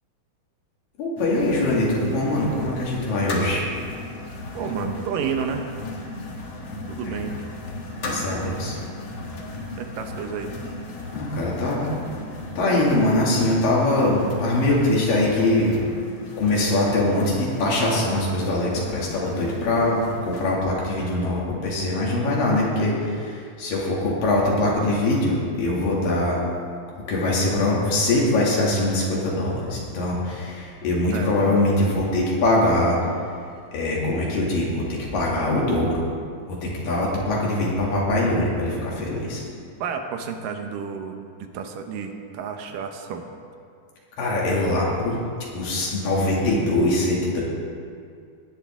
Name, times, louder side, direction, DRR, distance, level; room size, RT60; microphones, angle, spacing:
voice 1, 1.0-3.6 7.0-7.2 8.0-8.8 11.1-12.0 12.6-15.8 16.4-26.4 27.1-33.0 33.7-36.0 36.5-39.4 44.2-45.2 45.5-47.4, left 1 dB, 75° left, -4 dB, 4.1 m, -22 dB
sound 1, 1.2-20.4, left 2 dB, 50° left, 2.4 m, -36 dB
voice 2, 4.5-5.7 6.9-7.4 9.8-10.6 31.1-31.3 39.8-43.3, right 6 dB, 75° right, 5 dB, 2.5 m, -31 dB
19.0 x 11.0 x 3.7 m, 2.2 s
omnidirectional pair, 4.0 m